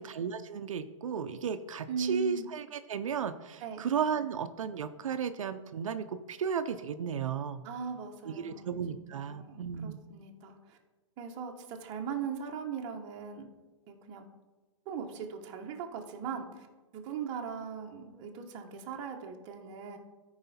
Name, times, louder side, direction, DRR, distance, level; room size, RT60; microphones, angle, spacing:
voice 1, 0.0-7.6 8.3-10.0, right 7 dB, 80° right, 9 dB, 0.6 m, -34 dB
voice 2, 1.9-2.5 3.6-3.8 7.6-10.8 11.2-13.5 13.9-14.2 14.9-16.7 16.9-20.0, right 6 dB, 25° right, 2 dB, 1.0 m, -39 dB
13.5 x 4.8 x 4.2 m, 1.2 s
hypercardioid pair, 155°, 17 cm